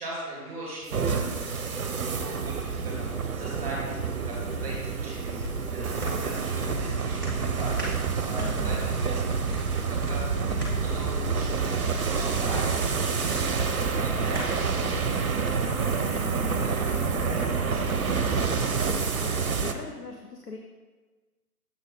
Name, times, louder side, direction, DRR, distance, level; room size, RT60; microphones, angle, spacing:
voice 1, 0.0-3.9 4.2-5.4 5.7-7.9 8.2-11.8 12.1-15.7 16.0-16.4 16.6-18.3, right 1 dB, 25° right, -4 dB, 2.3 m, -40 dB
sound 1, 0.9-19.7, right 5 dB, 65° right, 0.7 m, -28 dB
sound 2, 4.8-18.4 18.8-18.9, equal, 15° left, 0.7 m, -42 dB
voice 2, 8.4-8.9 16.2-16.6 18.7-20.6, left 4 dB, 80° left, 2 dB, 0.9 m, -41 dB
7.2 x 3.6 x 5.4 m, 1.3 s
figure-of-eight pair, 150°, 47 cm